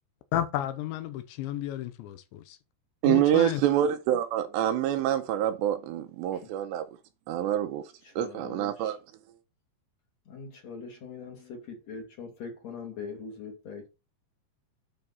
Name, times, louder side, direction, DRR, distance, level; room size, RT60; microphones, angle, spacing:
voice 1, 0.3-2.6 3.1-3.6, left 12 dB, 80° left, 3.1 m, -32 dB
voice 2, 3.0-6.9 7.3-7.8 8.2-9.0, right 11 dB, 80° right, 2.9 m, -26 dB
voice 3, 8.0-8.9 10.3-13.9, left 5 dB, 45° left, 3.0 m, -42 dB
9.9 x 5.2 x 4.1 m
omnidirectional pair, 5.3 m